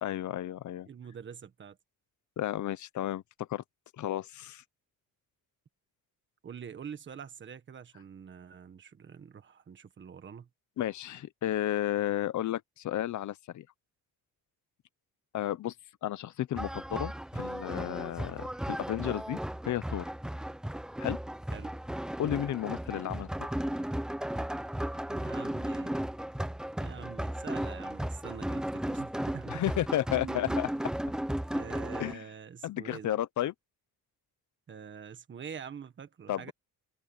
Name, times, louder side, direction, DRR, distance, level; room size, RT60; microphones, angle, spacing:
voice 1, 0.0-0.9 2.4-3.6 4.0-4.6 10.8-13.7 15.3-15.7 16.0-19.4 19.6-20.1 21.0-21.2 22.2-23.3 29.5-30.7 32.0-32.2 32.6-33.5 36.3-36.5, left 12 dB, 50° left, 0.8 m, -33 dB
voice 2, 0.9-1.8 6.4-10.5 21.5-21.7 22.5-22.6 25.1-26.0 26.8-29.6 30.1-30.6 31.5-33.2 34.7-36.5, right 7 dB, 30° right, 1.5 m, -45 dB
sound 1, 16.6-32.1, right 1 dB, ahead, 0.5 m, -35 dB
cardioid pair, 170°, 36 cm